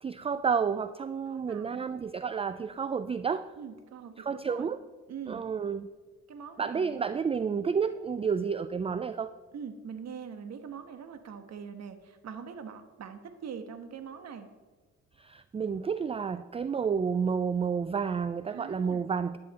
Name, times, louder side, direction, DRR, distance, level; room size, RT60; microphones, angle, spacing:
voice 1, 0.0-3.5 4.2-4.8 5.3-5.9 6.6-9.3 15.2-19.4, right 6 dB, 20° right, 13 dB, 0.3 m, -30 dB
voice 2, 1.3-1.9 3.6-4.7 5.1-5.4 6.3-7.0 9.5-14.5 18.5-19.1, right 7 dB, 60° right, 8 dB, 1.3 m, -43 dB
11.5 x 11.0 x 4.2 m, 1.3 s
cardioid pair, 90°, 30 cm